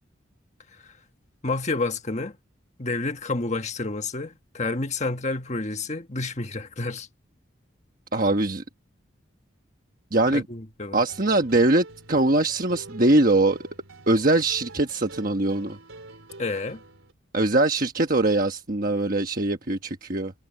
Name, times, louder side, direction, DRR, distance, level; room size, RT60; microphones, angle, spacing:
voice 1, 1.4-2.4 2.8-7.1 10.3-11.0 16.4-16.8, left 3 dB, 35° left, 1.5 m, -29 dB
voice 2, 8.1-8.6 10.1-10.4 10.9-13.6 14.1-15.8 17.3-20.3, right 2 dB, 45° right, 1.3 m, -22 dB
sound 1, 11.1-17.1, right 2 dB, 85° right, 3.8 m, -46 dB
head